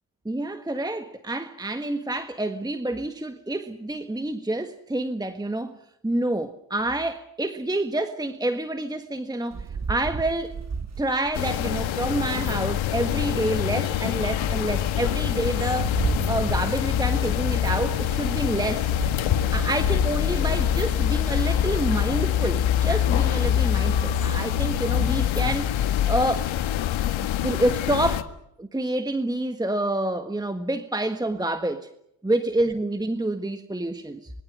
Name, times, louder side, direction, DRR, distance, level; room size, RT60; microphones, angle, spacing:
voice 1, 0.2-5.8 6.0-10.6 11.0-16.0 16.3-18.9 19.5-26.5 27.2-28.3 28.6-31.9 32.2-34.3, right 1 dB, 10° right, 1.6 m, -28 dB
Rain, 9.5-13.0 13.6-13.7 14.2-20.7, right 5 dB, 30° right, 1.7 m, -35 dB
sound 1, 11.3-28.2, left 10 dB, 70° left, 1.8 m, -25 dB
26.0 x 22.5 x 6.4 m
supercardioid pair, 75°, 49 cm